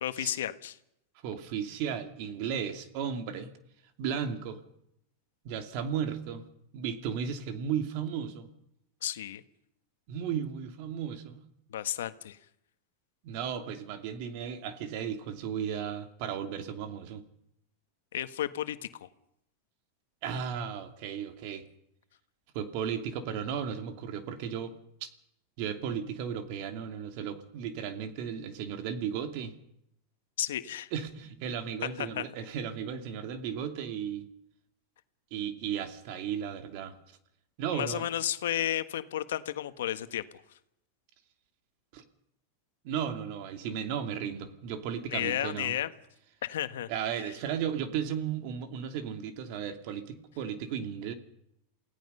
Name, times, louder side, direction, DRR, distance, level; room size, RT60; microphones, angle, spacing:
voice 1, 0.0-0.8 9.0-9.4 11.7-12.4 18.1-19.1 30.4-30.9 32.0-32.2 37.7-40.2 45.1-45.9 46.4-46.9, left 11 dB, 85° left, 11 dB, 1.4 m, -32 dB
voice 2, 1.2-3.5 4.0-4.6 5.4-6.4 6.7-8.5 10.1-11.4 13.2-17.2 20.2-21.7 22.5-25.1 25.6-29.5 30.9-34.3 35.3-37.0 37.6-38.1 41.9-42.0 42.8-45.7 46.9-51.1, right 8 dB, 55° right, 7 dB, 2.6 m, -35 dB
28.5 x 17.0 x 5.6 m, 0.77 s
supercardioid pair, 135°, 0 cm